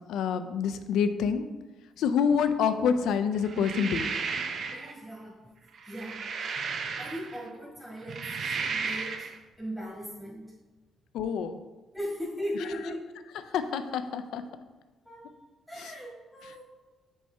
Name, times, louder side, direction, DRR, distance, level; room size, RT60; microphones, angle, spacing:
voice 1, 0.1-1.5 2.0-4.1 11.1-11.6 13.4-14.4 15.8-15.9, left 7 dB, 85° left, 10 dB, 0.4 m, -27 dB
sound 1, 3.4-4.9 5.7-7.5 8.0-9.4, right 5 dB, 60° right, 0.5 m, -34 dB
voice 2, 4.7-5.3 5.8-6.2 7.0-9.3 9.6-10.5 11.9-13.1 15.0-15.2 15.7-16.6, equal, 5° left, -6 dB, 1.6 m, -38 dB
6.4 x 4.4 x 3.3 m, 1.2 s
cardioid pair, 90°, 0 cm